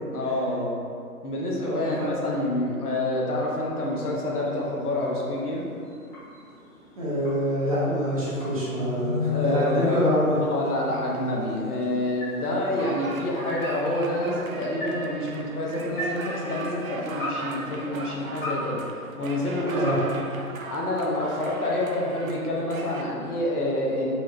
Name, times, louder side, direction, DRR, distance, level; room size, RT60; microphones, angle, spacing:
voice 1, 0.0-0.7 1.2-5.7 9.3-10.0 10.5-18.8 19.2-19.9 20.7-24.2, left 1 dB, 75° left, -3 dB, 1.1 m, -27 dB
voice 2, 1.5-2.1 7.0-10.4 19.7-20.0, equal, 25° right, -9 dB, 0.6 m, -25 dB
sound 1, 3.4-21.1, equal, 35° left, 1.2 m, -41 dB
sound 2, 8.3-11.8, left 4 dB, 90° right, 1.0 m, -31 dB
sound 3, 12.8-23.0, right 3 dB, 65° right, 0.5 m, -38 dB
4.7 x 3.1 x 2.6 m, 2.4 s
figure-of-eight pair, 145°, 46 cm